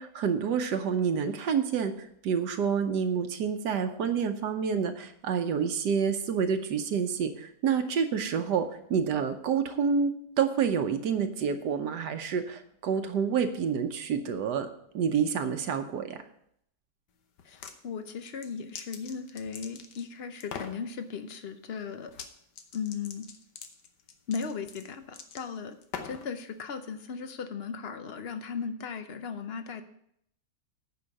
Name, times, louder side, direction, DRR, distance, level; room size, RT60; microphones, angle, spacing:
voice 1, 0.0-1.9 2.2-14.7 14.9-16.2, right 6 dB, 75° right, 8 dB, 1.4 m, -28 dB
sound 1, 17.4-17.8 18.2-20.1 20.4-20.8 22.1-22.3 22.6-26.3, left 6 dB, 80° left, 1.5 m, -42 dB
voice 2, 17.4-22.1 22.7-23.3 24.3-25.8 26.0-29.8, left 6 dB, 65° left, 9 dB, 0.6 m, -37 dB
9.7 x 5.5 x 6.5 m, 0.71 s
omnidirectional pair, 1.8 m